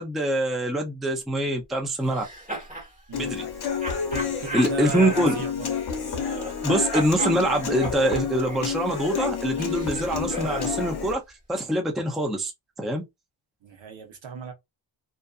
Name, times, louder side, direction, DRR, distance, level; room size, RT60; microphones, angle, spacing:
voice 1, 0.0-2.2 3.2-3.5 4.5-5.4 6.6-11.2 11.5-12.5 12.8-13.0, right 1 dB, ahead, 0.4 m, -24 dB
sound 1, 2.0-2.9 3.8-6.6 6.9-10.8, right 1 dB, 15° right, 1.3 m, -36 dB
Human voice / Acoustic guitar, 3.1-11.1, left 6 dB, 50° left, 0.9 m, -29 dB
voice 2, 4.1-5.7 13.6-14.5, right 6 dB, 70° right, 0.9 m, -36 dB
2.6 x 2.4 x 2.3 m
wide cardioid pair, 125°, 48 cm